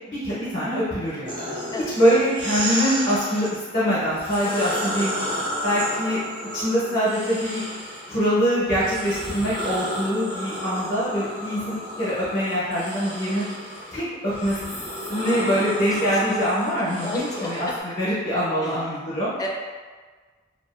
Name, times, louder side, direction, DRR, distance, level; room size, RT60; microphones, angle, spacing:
voice 1, 0.1-1.5 1.9-3.5 3.7-5.1 5.6-6.2 6.5-7.6 8.1-13.4 13.9-14.6 15.1-17.7 18.0-19.3, equal, 55° left, -10 dB, 0.8 m, -24 dB
sound 1, 1.3-3.5 4.1-8.2 8.7-17.8, equal, 45° right, 0.7 m, -32 dB
voice 2, 15.9-16.4 17.0-17.8 18.6-18.8 19.4-19.5, left 2 dB, 20° left, -2 dB, 0.3 m, -32 dB
2.5 x 2.4 x 2.4 m, 1.4 s
head